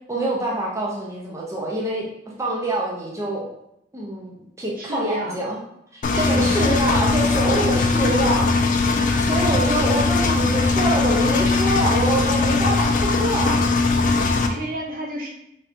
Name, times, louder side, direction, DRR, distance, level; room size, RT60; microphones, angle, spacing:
voice 1, 0.1-2.1 2.4-3.5 3.9-5.6 5.9-8.6 9.2-13.6, right 1 dB, 15° right, -4 dB, 0.5 m, -25 dB
voice 2, 4.8-5.4 6.1-6.7 7.2-7.7 8.0-8.1 8.5-8.6 14.2-15.3, equal, 55° right, 0 dB, 0.7 m, -32 dB
Engine, 6.0-14.5, left 3 dB, 45° left, 0.3 m, -20 dB
3.3 x 2.8 x 2.5 m, 0.79 s
head